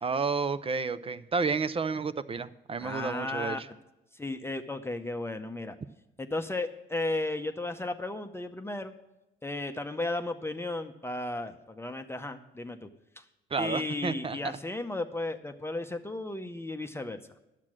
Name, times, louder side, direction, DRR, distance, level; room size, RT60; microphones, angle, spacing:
voice 1, 0.0-3.7 13.5-14.4, right 5 dB, 30° right, 15 dB, 0.4 m, -31 dB
voice 2, 2.8-3.6 4.1-5.8 6.2-8.9 9.4-12.9 13.2-13.3 13.6-17.2, left 2 dB, 10° left, 6 dB, 0.7 m, -34 dB
10.5 x 7.5 x 6.1 m, 0.94 s
cardioid pair, 90°, 20 cm